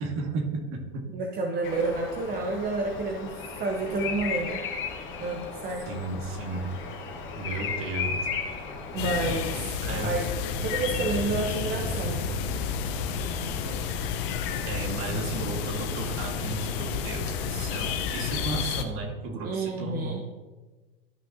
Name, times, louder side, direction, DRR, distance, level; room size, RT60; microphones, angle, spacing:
voice 1, 0.0-1.1 5.9-6.8 7.4-8.3 9.8-10.1 14.6-20.3, right 3 dB, 45° right, 3 dB, 1.9 m, -34 dB
voice 2, 1.1-3.3 3.6-4.6 5.2-5.8 8.9-10.3 10.6-12.3 19.4-20.2, right 3 dB, 30° right, 1 dB, 1.1 m, -30 dB
Bird vocalization bird call bird song, 1.6-9.6, left 5 dB, 40° left, 1.4 m, -35 dB
sound 1, 6.6-13.8, right 2 dB, 65° right, 2.0 m, -42 dB
sound 2, 9.0-18.8, left 7 dB, 60° left, 1.0 m, -31 dB
13.0 x 5.8 x 2.9 m, 1.2 s
hypercardioid pair, 100°, 30 cm